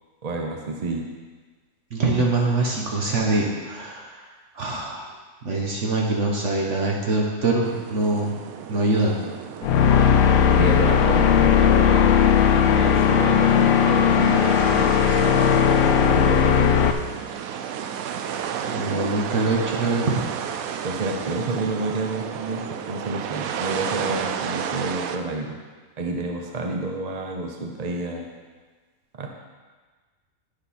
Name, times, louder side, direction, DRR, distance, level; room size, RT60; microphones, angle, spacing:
voice 1, 0.2-1.1 10.5-14.9 16.0-17.0 20.8-25.6 26.0-28.3 29.2-29.3, right 2 dB, 40° right, 2 dB, 0.7 m, -29 dB
voice 2, 1.9-4.2 4.5-5.0 5.4-8.4 8.7-9.2 18.6-20.2, right 2 dB, 60° right, -1 dB, 1.4 m, -23 dB
sound 1, 7.6-25.2, right 8 dB, 90° right, 1.0 m, -33 dB
sound 2, 9.6-16.9, left 8 dB, 80° left, 1.1 m, -17 dB
11.5 x 5.7 x 4.2 m, 1.4 s
omnidirectional pair, 1.4 m